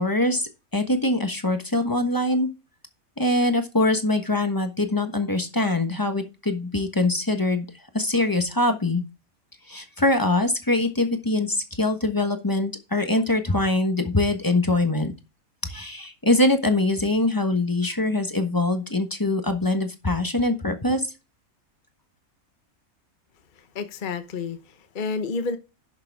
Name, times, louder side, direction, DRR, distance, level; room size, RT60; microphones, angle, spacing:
voice 1, 0.0-2.5 3.2-7.6 7.9-9.0 9.7-15.1 15.6-21.1, left 2 dB, 15° left, 1.2 m, -23 dB
voice 2, 23.5-25.6, left 4 dB, 40° left, 1.0 m, -30 dB
11.5 x 6.7 x 3.6 m
omnidirectional pair, 1.5 m